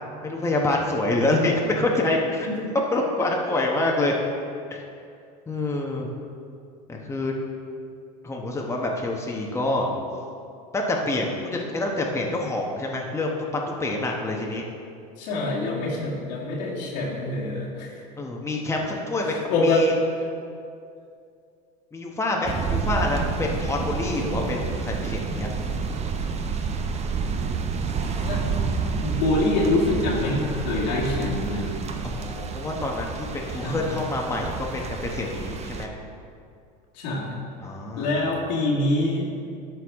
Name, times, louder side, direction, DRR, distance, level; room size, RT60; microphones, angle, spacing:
voice 1, 0.2-2.5 2.9-4.1 4.7-4.8 5.5-6.1 6.9-7.3 8.2-9.9 10.7-13.3 13.8-14.6 18.2-19.3 19.6-19.9 21.9-25.5 32.0-35.9 37.6-38.3, left 2 dB, 15° left, -1 dB, 1.0 m, -26 dB
voice 2, 15.2-17.9 19.2-19.9 28.2-28.6 28.9-32.0 33.6-33.9 37.0-37.3 38.0-39.3, left 2 dB, 85° left, -5 dB, 2.0 m, -25 dB
sound 1, 22.4-35.9, right 5 dB, 30° right, 0.7 m, -29 dB
12.5 x 4.7 x 3.6 m, 2.4 s
supercardioid pair, 100°, 21 cm